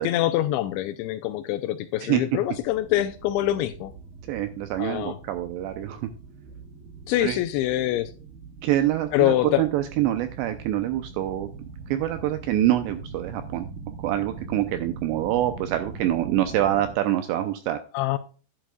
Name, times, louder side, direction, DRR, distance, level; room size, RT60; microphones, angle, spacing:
voice 1, 0.0-3.9 4.8-5.2 7.1-8.1 9.1-9.6 17.9-18.2, left 14 dB, 85° left, 2.7 m, -25 dB
sound 1, 2.5-16.9, right 4 dB, 55° right, 3.3 m, -42 dB
voice 2, 4.3-6.1 7.2-7.4 8.6-11.5 11.9-13.7 14.0-17.8, right 13 dB, 85° right, 2.5 m, -25 dB
11.0 x 10.5 x 2.3 m
omnidirectional pair, 5.7 m